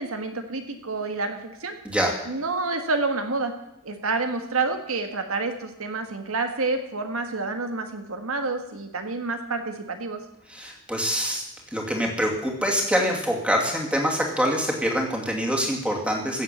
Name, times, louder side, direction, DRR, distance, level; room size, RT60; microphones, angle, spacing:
voice 1, 0.0-1.8 2.3-3.5 3.8-10.2, right 3 dB, 80° right, 6 dB, 1.7 m, -28 dB
voice 2, 10.5-11.4 11.7-16.4, equal, 5° right, 0 dB, 2.6 m, -25 dB
16.0 x 7.5 x 7.2 m, 0.82 s
head